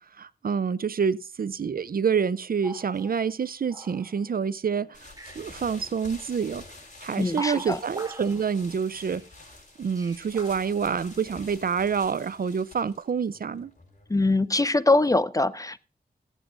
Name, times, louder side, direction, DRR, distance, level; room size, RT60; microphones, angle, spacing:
voice 1, 0.2-6.6 7.0-9.2 9.8-13.7, right 6 dB, 60° right, 0.5 m, -27 dB
sound 1, 2.6-4.4 4.8-5.7 6.7-6.8 7.1-9.3 9.7-11.2, right 2 dB, 20° right, 1.9 m, -42 dB
sound 2, 4.9-14.5, left 2 dB, 45° left, 5.5 m, -48 dB
voice 2, 7.2-7.8 14.1-15.8, left 2 dB, 20° left, 0.5 m, -23 dB
16.0 x 8.1 x 3.8 m
wide cardioid pair, 70°, 17 cm